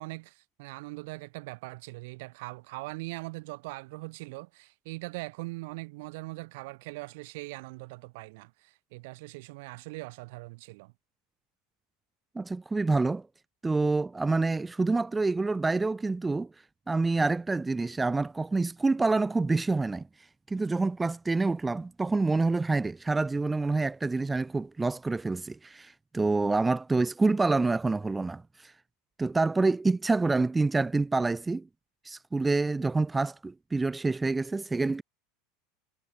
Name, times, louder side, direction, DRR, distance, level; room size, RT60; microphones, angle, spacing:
voice 1, 0.0-10.9, right 24 dB, 70° right, 1.6 m, -41 dB
voice 2, 12.4-13.2 13.6-16.5 16.9-20.0 20.5-28.7 29.2-31.6 32.0-35.0, right 3 dB, 10° right, 0.3 m, -27 dB
supercardioid pair, 135°, 0 cm